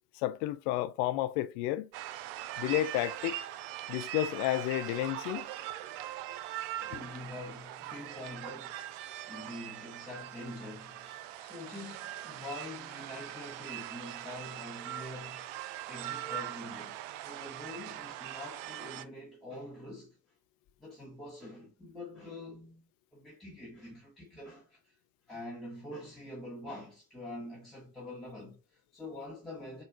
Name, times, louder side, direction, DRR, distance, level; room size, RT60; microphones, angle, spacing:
voice 1, 0.1-1.9 2.6-3.4 3.9-5.5, left 14 dB, 55° left, 0.5 m, -31 dB
sound 1, 1.9-19.0, right 13 dB, 60° right, 0.5 m, -41 dB
voice 2, 6.8-8.9 9.2-15.4 15.9-20.2 20.8-25.0 25.3-29.8, left 1 dB, ahead, 1.8 m, -45 dB
5.4 x 2.7 x 2.4 m
figure-of-eight pair, 50°, 44 cm